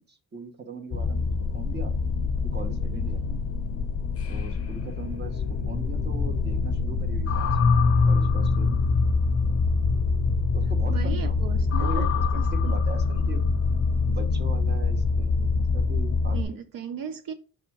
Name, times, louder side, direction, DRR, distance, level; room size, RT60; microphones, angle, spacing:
voice 1, 0.0-1.9 2.4-3.4 4.3-7.6 8.0-8.8 10.5-11.4 11.8-12.2 12.5-13.4 14.1-16.6, right 3 dB, 30° right, 1.0 m, -40 dB
sound 1, 0.9-16.4, left 4 dB, 40° left, 0.6 m, -24 dB
voice 2, 10.9-12.1 12.4-12.8 16.3-17.3, right 7 dB, 70° right, 0.6 m, -36 dB
5.9 x 3.5 x 4.6 m
wide cardioid pair, 140°, 36 cm